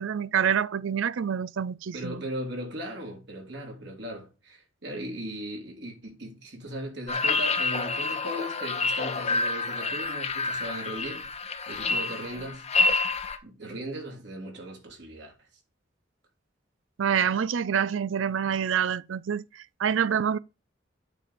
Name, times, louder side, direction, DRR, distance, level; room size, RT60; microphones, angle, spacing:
voice 1, 0.0-2.2 17.0-20.4, right 8 dB, 90° right, 0.4 m, -27 dB
voice 2, 1.9-11.2 11.7-12.7 13.4-15.3, right 1 dB, 65° right, 3.1 m, -38 dB
sound 1, 7.1-13.4, left 3 dB, 35° left, 1.0 m, -28 dB
8.9 x 4.3 x 6.6 m
head